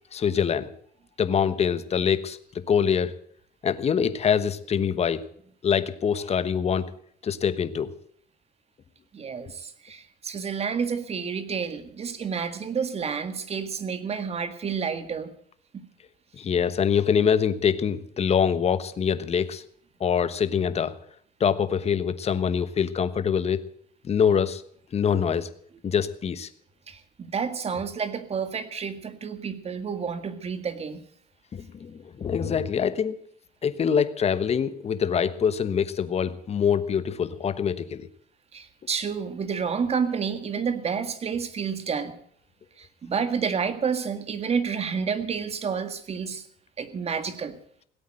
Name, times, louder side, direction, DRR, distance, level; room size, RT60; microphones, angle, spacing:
voice 1, 0.1-0.7 1.2-2.4 2.7-3.1 3.6-5.2 5.6-6.9 7.2-7.9 16.4-19.6 20.0-20.9 21.4-23.6 24.0-24.6 24.9-25.5 25.8-26.5 31.5-33.2 33.6-38.1, left 7 dB, 40° left, 13 dB, 1.2 m, -24 dB
voice 2, 9.1-15.3 15.7-15.9 26.9-31.0 38.5-42.2 42.8-46.4 46.8-47.6, right 6 dB, 35° right, 11 dB, 1.8 m, -30 dB
17.0 x 8.5 x 8.8 m, 0.64 s
cardioid pair, 110°, 17 cm